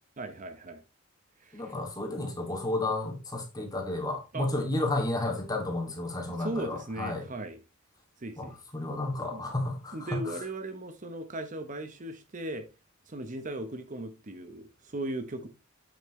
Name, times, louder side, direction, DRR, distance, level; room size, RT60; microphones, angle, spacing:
voice 1, 0.2-0.8 1.4-1.7 4.3-4.5 6.3-7.6 8.2-8.6 9.3-9.4 9.9-12.7 13.1-15.5, right 2 dB, 40° right, 0.8 m, -37 dB
voice 2, 1.5-7.2 8.4-10.2, left 2 dB, 20° left, 2.3 m, -32 dB
8.5 x 7.2 x 3.1 m
head